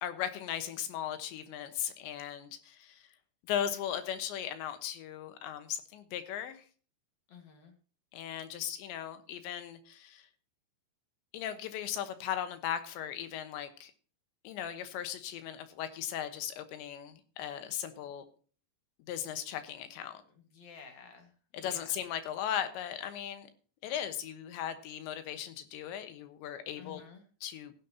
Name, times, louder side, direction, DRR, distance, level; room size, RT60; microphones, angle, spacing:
voice 1, 0.0-3.0 3.5-6.6 8.1-10.3 11.3-13.9 14.5-18.3 19.1-20.2 21.5-23.5 23.8-27.0 27.4-27.7, left 10 dB, 90° left, 9 dB, 3.5 m, -37 dB
voice 2, 7.3-7.7 20.4-21.8 26.8-27.3, left 6 dB, 50° left, 5 dB, 2.4 m, -52 dB
16.0 x 10.5 x 2.8 m, 0.39 s
omnidirectional pair, 5.0 m